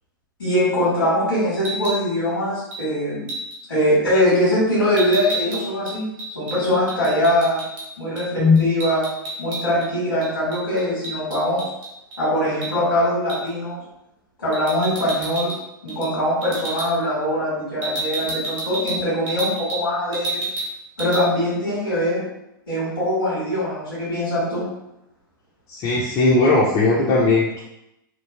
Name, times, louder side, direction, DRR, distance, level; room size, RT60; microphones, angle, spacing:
voice 1, 0.4-3.3 3.7-6.0 6.3-7.6 8.0-9.0 9.4-11.7 12.2-13.8 14.4-15.5 15.8-20.4 21.0-22.2 22.7-24.7, left 1 dB, 85° left, -8 dB, 1.5 m, -22 dB
sound 1, 1.5-2.0 2.7-2.9 3.3-3.6 5.0-7.9 8.1-8.3 8.5-9.9 10.2-12.2 12.6-12.7 13.3-13.5 14.5-15.6 15.9-16.1 16.4-16.9 17.8-19.8 20.1-20.7 21.0-21.2, right 2 dB, 35° right, 1.0 m, -30 dB
voice 2, 25.7-27.6, left 3 dB, 35° left, -5 dB, 0.5 m, -17 dB
3.0 x 2.3 x 2.2 m, 0.86 s
hypercardioid pair, 110°, 11 cm